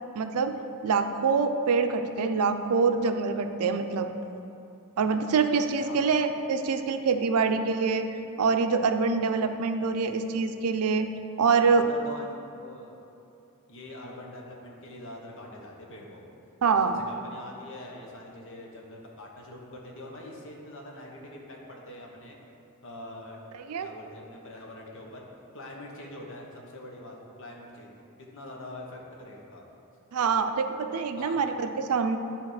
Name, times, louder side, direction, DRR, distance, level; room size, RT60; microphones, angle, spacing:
voice 1, 0.1-0.6 0.8-4.1 5.0-8.1 8.4-11.1 11.4-11.8 16.6-17.0 23.7-23.9 30.1-32.2, right 5 dB, 85° right, 8 dB, 0.5 m, -25 dB
voice 2, 5.7-6.3 11.5-12.9 13.7-16.2 16.7-22.4 22.8-23.4 23.8-25.2 25.5-28.0 28.3-29.6 31.2-31.4, left 1 dB, 60° left, -1 dB, 1.1 m, -44 dB
10.5 x 3.6 x 4.9 m, 2.7 s
head